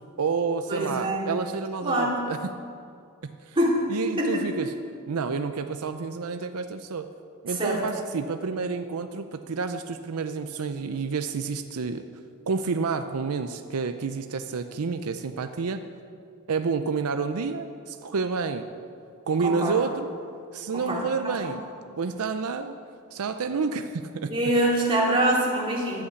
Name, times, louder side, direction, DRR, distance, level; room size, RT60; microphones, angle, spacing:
voice 1, 0.2-2.4 3.2-3.6 3.9-4.7 5.1-7.1 7.4-12.0 12.5-15.8 16.5-18.7 19.3-20.1 20.5-21.6 22.0-22.7 23.1-24.3, right 5 dB, 85° right, 8 dB, 0.6 m, -29 dB
voice 2, 0.7-1.3 1.8-2.3 3.5-3.8 4.2-4.5 7.5-7.8 19.4-19.8 20.7-21.3 24.3-26.0, right 1 dB, 25° right, -3 dB, 2.6 m, -25 dB
11.5 x 8.3 x 8.2 m, 2.4 s
head